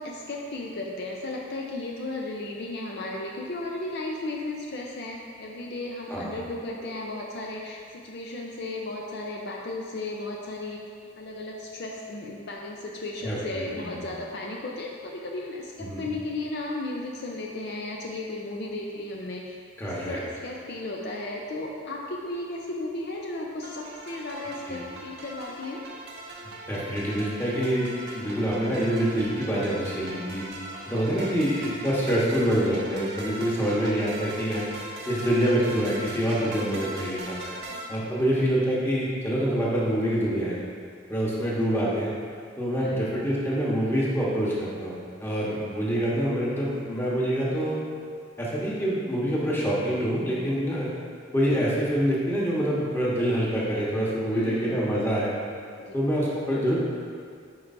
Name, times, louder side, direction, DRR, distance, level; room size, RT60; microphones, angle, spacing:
voice 1, 0.0-10.8 11.2-19.6 19.8-25.8 36.7-36.8 37.7-37.8 41.3-41.5 42.8-43.1 54.3-54.8 55.8-55.9, left 2 dB, 55° left, -1 dB, 0.5 m, -35 dB
voice 2, 13.2-14.0 15.8-16.0 19.8-20.2 24.7-24.8 26.7-27.9 28.1-30.4 30.9-34.7 35.1-37.4 37.9-40.6 41.1-42.1 42.6-47.8 48.4-50.9 51.3-55.3 55.9-56.8, equal, 10° left, -6 dB, 1.1 m, -26 dB
sound 1, 23.6-37.9, right 2 dB, 55° right, 0.7 m, -40 dB
9.5 x 4.5 x 2.6 m, 2.2 s
head